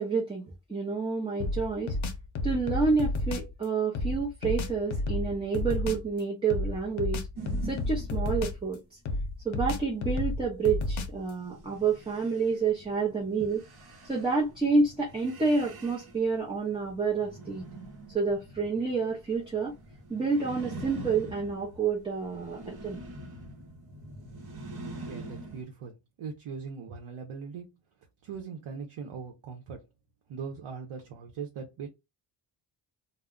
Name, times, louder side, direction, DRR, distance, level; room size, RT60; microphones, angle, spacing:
voice 1, 0.0-2.0 2.4-7.2 7.6-9.0 9.4-13.6 14.0-17.7 18.1-19.7 20.1-23.0, right 4 dB, 10° right, 0.5 m, -29 dB
sound 1, 1.4-3.5 3.9-6.1 6.5-8.7 9.0-11.3, left 2 dB, 70° left, 0.6 m, -31 dB
sound 2, 7.4-8.6 11.2-25.6, right 2 dB, 50° right, 0.9 m, -45 dB
voice 2, 25.0-27.7 28.2-29.8 30.3-31.9, right 6 dB, 75° right, 0.7 m, -40 dB
2.2 x 2.0 x 3.6 m
wide cardioid pair, 140°, 49 cm